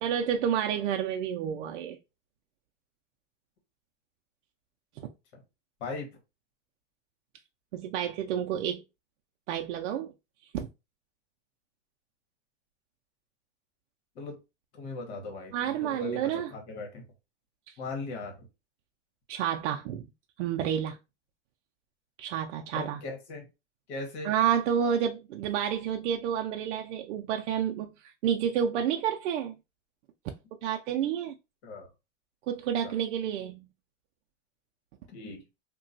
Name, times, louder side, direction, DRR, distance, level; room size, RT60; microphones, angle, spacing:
voice 1, 0.0-2.0 5.0-5.1 7.7-8.8 9.5-10.1 10.5-10.7 15.5-16.5 17.7-17.8 19.3-20.1 20.4-21.0 22.2-23.0 24.2-29.5 30.6-31.3 32.5-33.7, right 9 dB, 85° right, 0.5 m, -29 dB
voice 2, 14.7-17.0 17.8-18.5 22.7-23.5 23.9-24.3 31.6-31.9 32.8-32.9 35.1-35.4, left 3 dB, 65° left, 1.4 m, -39 dB
2.9 x 2.2 x 2.6 m
supercardioid pair, 145°, 36 cm